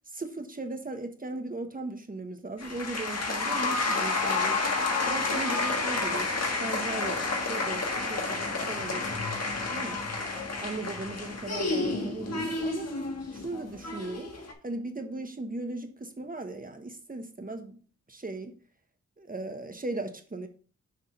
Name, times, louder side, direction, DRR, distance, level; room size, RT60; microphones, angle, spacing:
voice 1, 0.1-4.8 5.0-7.2 7.5-9.1 9.7-10.0 10.6-12.9 13.3-14.3 14.6-17.8 18.1-18.6 19.2-20.5, right 2 dB, 30° right, 1.0 m, -37 dB
sound 1, 2.6-14.5, left 3 dB, 60° left, 1.5 m, -30 dB
6.7 x 3.5 x 5.6 m
cardioid pair, 70°, 30 cm